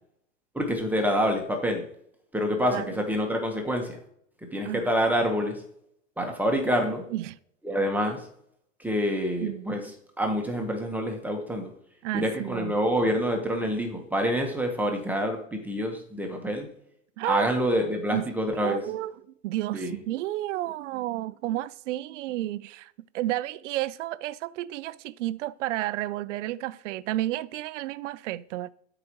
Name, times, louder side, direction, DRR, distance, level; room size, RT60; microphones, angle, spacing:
voice 1, 0.5-1.8 2.3-4.0 4.5-5.6 6.2-7.0 7.6-8.3 8.8-9.8 10.2-11.7 12.1-16.7 17.3-18.8 19.7-19.9, equal, 5° right, 1.2 m, -27 dB
voice 2, 12.0-12.7 17.2-17.6 18.1-19.1 19.4-28.7, right 15 dB, 70° right, 0.6 m, -31 dB
12.0 x 5.0 x 3.1 m
supercardioid pair, 130°, 39 cm